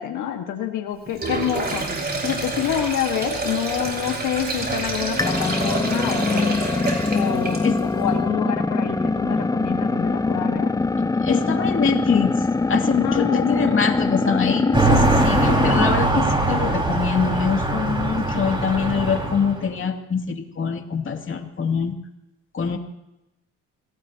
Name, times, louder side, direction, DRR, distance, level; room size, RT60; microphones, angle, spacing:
voice 1, 0.0-1.9 2.2-6.6 7.1-10.7 13.0-13.8, left 10 dB, 85° left, 4 dB, 1.7 m, -27 dB
Sink (filling or washing), 1.1-7.9, right 2 dB, 30° right, 5.8 m, -28 dB
sound 1, 5.2-16.1, left 3 dB, 10° left, 0.5 m, -23 dB
voice 2, 11.2-12.3 12.7-21.9 22.5-22.8, left 6 dB, 40° left, 3 dB, 2.6 m, -24 dB
sound 2, 14.7-19.6, right 2 dB, 15° right, 4.9 m, -22 dB
27.0 x 18.0 x 2.9 m, 0.90 s
cardioid pair, 90°, 30 cm